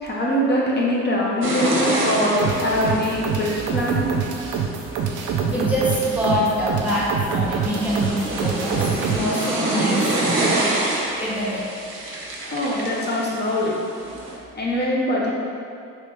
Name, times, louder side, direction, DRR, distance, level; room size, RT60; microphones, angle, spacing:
voice 1, 0.0-4.1 12.4-13.8 14.6-15.3, left 1 dB, 35° left, -5 dB, 0.7 m, -23 dB
sound 1, 1.4-14.4, right 2 dB, 40° right, 0.8 m, -27 dB
sound 2, 2.4-9.2, right 6 dB, 75° right, 0.5 m, -26 dB
voice 2, 5.4-10.7 11.2-11.6, equal, 5° right, -7 dB, 0.9 m, -25 dB
3.2 x 3.0 x 3.3 m, 2.5 s
cardioid pair, 90°, 30 cm